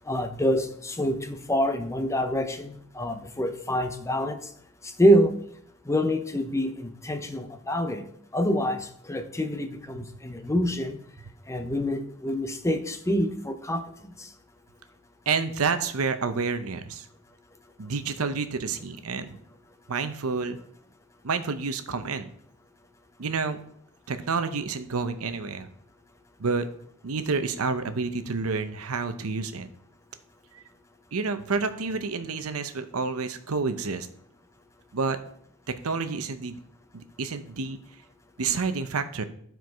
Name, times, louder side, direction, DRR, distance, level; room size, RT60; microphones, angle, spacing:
voice 1, 0.1-4.4 5.0-5.4 5.9-8.0 8.3-11.0 11.5-13.8, equal, 15° left, 0.6 m, -26 dB
voice 2, 15.3-17.1 17.8-19.4 19.9-20.6 21.2-22.3 23.2-23.6 24.1-25.7 26.4-26.6 27.0-29.7 30.5-30.6 31.1-34.1 34.9-35.2 35.8-36.6 36.9-37.8 38.4-39.2, right 4 dB, 70° right, 0.7 m, -29 dB
11.5 x 4.6 x 4.7 m
head